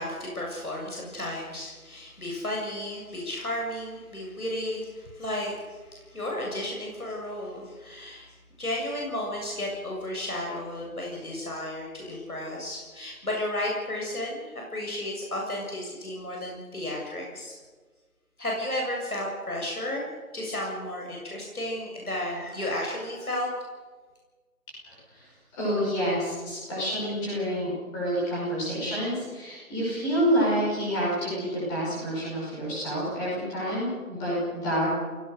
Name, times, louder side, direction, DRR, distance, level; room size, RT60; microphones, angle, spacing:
voice 1, 0.0-17.5 18.4-20.1 20.3-23.5, left 1 dB, 75° left, -1 dB, 7.5 m, -33 dB
voice 2, 24.8-34.9, equal, 5° left, -7 dB, 5.8 m, -28 dB
29.5 x 18.0 x 6.7 m, 1.4 s
figure-of-eight pair, 170°, 44 cm